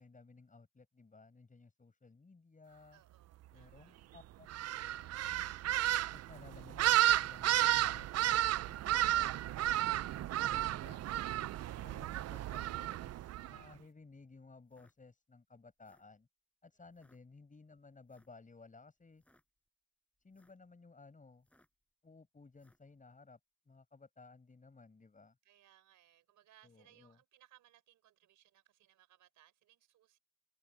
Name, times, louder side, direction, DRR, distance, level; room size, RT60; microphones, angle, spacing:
voice 1, 0.0-3.0 3.5-4.5 4.8-5.7 6.1-9.6 9.9-11.0 11.8-16.3 16.6-19.2 20.2-21.5 22.0-23.4 23.6-25.4 26.6-27.2, left 3 dB, 25° left, 8.0 m, -58 dB
voice 2, 2.9-3.9 11.6-12.0 25.4-30.2, right 13 dB, 80° right, 4.6 m, -67 dB
sound 1, 4.5-13.6, right 13 dB, 55° right, 0.5 m, -33 dB
sound 2, 14.7-14.9 15.7-16.2 16.9-17.2 18.1-18.4 19.1-19.4 20.2-20.7 21.4-21.8 22.5-22.9, left 1 dB, 5° left, 5.5 m, -72 dB
cardioid pair, 90°, 30 cm